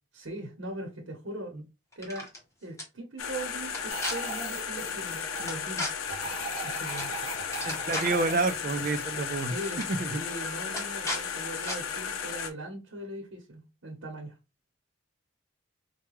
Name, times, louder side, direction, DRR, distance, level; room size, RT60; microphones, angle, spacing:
voice 1, 0.1-1.5 2.0-2.3 2.6-5.9 6.6-7.4 9.4-9.8 10.1-14.4, right 1 dB, 75° right, 0.9 m, -40 dB
sound 1, 1.9-2.4 2.8-2.9 3.7-4.1 5.5-5.9 7.0-7.1 7.4-8.2 9.2-9.3 9.6-9.9 10.7-11.2 11.6-11.8, left 1 dB, 15° left, 0.9 m, -34 dB
sound 2, 3.2-12.5, left 7 dB, 90° left, 0.5 m, -35 dB
sound 3, 3.9-5.5 6.0-9.6, right 1 dB, 70° left, 1.8 m, -39 dB
voice 2, 7.6-9.5 9.9-10.2, right 3 dB, 40° right, 0.4 m, -29 dB
4.6 x 2.2 x 3.0 m
head